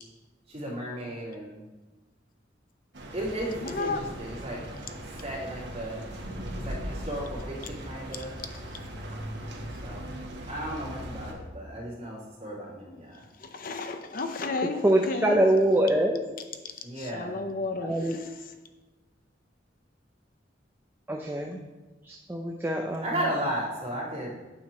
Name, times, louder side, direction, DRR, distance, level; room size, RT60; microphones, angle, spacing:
voice 1, 0.5-1.6 3.1-4.6 5.1-6.0 6.6-8.4 9.8-10.1 10.4-13.2 16.8-17.4 23.0-24.3, right 1 dB, 35° right, -6 dB, 2.9 m, -35 dB
sound 1, 2.9-11.3, equal, 65° right, 1.3 m, -39 dB
voice 2, 3.6-4.0 13.4-15.4 17.0-18.3, left 3 dB, 50° left, 7 dB, 0.7 m, -33 dB
voice 3, 14.8-16.2 17.8-18.2 21.1-21.6 22.0-23.0, right 1 dB, 10° right, 1 dB, 0.5 m, -24 dB
8.7 x 4.6 x 6.1 m, 1.2 s
head